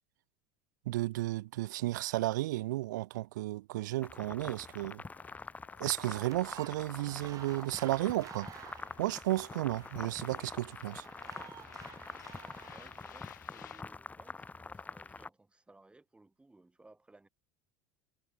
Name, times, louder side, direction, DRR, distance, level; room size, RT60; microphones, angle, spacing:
voice 1, 0.9-5.0 5.8-8.5 9.0-11.1, right 17 dB, 80° right, 0.5 m, -33 dB
sound 1, 4.0-15.3, left 4 dB, 15° left, 1.0 m, -46 dB
sound 2, 4.4-13.8, left 12 dB, 85° left, 5.5 m, -58 dB
sound 3, 6.0-13.1, right 10 dB, 35° right, 0.7 m, -52 dB
voice 2, 12.6-17.3, right 2 dB, 10° right, 3.4 m, -61 dB
hypercardioid pair, 90°, 10 cm